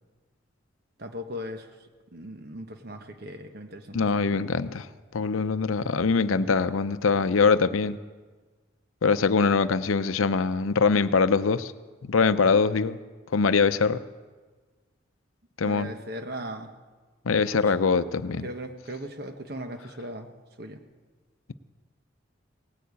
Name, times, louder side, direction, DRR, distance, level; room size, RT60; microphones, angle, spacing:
voice 1, 1.0-1.7 2.1-4.4 15.6-16.7 17.4-17.7 18.4-20.3 20.6-20.8, equal, 50° right, 6 dB, 1.2 m, -38 dB
voice 2, 3.9-4.9 5.1-8.0 9.0-11.7 12.0-13.0 13.3-14.0 15.6-15.9 17.3-18.5, left 5 dB, 90° left, 13 dB, 0.6 m, -23 dB
18.0 x 8.6 x 8.4 m, 1.3 s
head